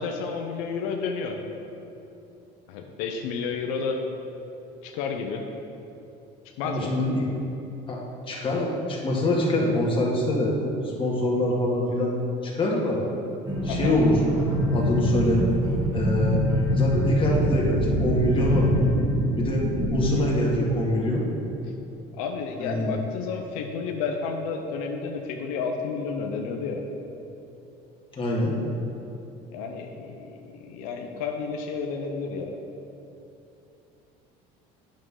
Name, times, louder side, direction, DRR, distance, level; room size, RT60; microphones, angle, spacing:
voice 1, 0.0-1.4 2.7-4.0 4.8-5.4 6.6-6.9 13.7-14.0 22.1-26.8 29.5-32.6, left 5 dB, 85° left, 2 dB, 0.7 m, -31 dB
voice 2, 6.6-7.2 7.9-8.0 8.3-10.5 11.0-12.2 12.4-13.0 13.6-14.2 14.5-15.4 15.9-16.4 16.7-18.7 19.4-19.6 19.9-21.2 22.6-22.9 28.2-28.6, left 1 dB, 30° left, -3 dB, 1.8 m, -24 dB
sound 1, 13.5-20.1, equal, 20° right, 1.9 m, -24 dB
8.7 x 6.3 x 3.8 m, 2.8 s
supercardioid pair, 110°, 18 cm